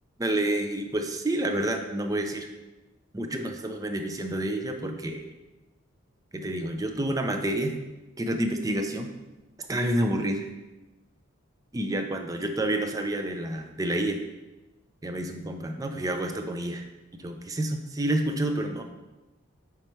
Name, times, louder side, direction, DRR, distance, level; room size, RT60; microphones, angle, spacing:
voice 1, 0.2-2.5 3.1-5.3 6.3-7.7 8.2-9.1 9.7-10.5 11.7-14.2 15.0-16.9 17.2-18.8, right 1 dB, 15° right, 5 dB, 0.4 m, -29 dB
5.3 x 4.7 x 4.4 m, 1.1 s
head